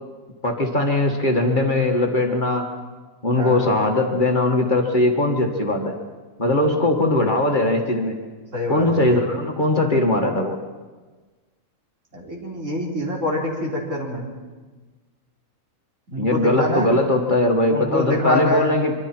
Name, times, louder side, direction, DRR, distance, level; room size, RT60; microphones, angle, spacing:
voice 1, 0.4-2.7 3.2-5.9 6.4-8.2 8.7-10.6 16.1-18.9, left 2 dB, 35° left, 2 dB, 1.9 m, -20 dB
voice 2, 3.3-3.7 8.5-9.2 12.1-14.3 16.1-16.9 17.7-18.7, left 1 dB, 60° right, -2 dB, 4.4 m, -25 dB
25.0 x 24.0 x 4.5 m, 1.3 s
omnidirectional pair, 1.5 m